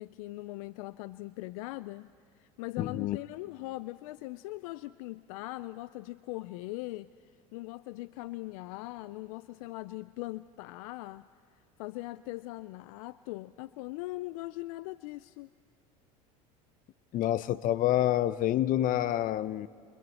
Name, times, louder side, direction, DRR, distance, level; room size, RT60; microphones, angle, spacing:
voice 1, 0.0-2.1 2.4-7.1 7.5-11.3 11.8-15.5, left 19 dB, 70° left, 0.4 m, -40 dB
voice 2, 2.8-3.2 17.1-19.7, left 13 dB, 45° left, 0.8 m, -27 dB
29.0 x 26.5 x 4.2 m
hypercardioid pair, 85°, 19 cm